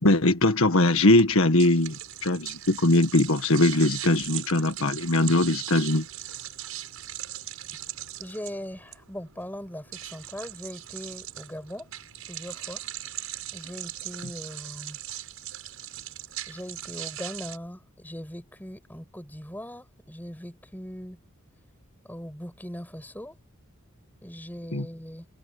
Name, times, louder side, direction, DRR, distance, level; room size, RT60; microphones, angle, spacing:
voice 1, 0.0-6.1 24.7-24.9, left 2 dB, 75° left, 1.7 m, -21 dB
sound 1, 1.2-17.6, right 13 dB, 80° right, 6.4 m, -39 dB
voice 2, 8.2-11.9 12.3-12.8 13.5-15.0 16.5-21.2 22.0-23.4 24.2-25.3, equal, 10° left, 7.8 m, -40 dB
head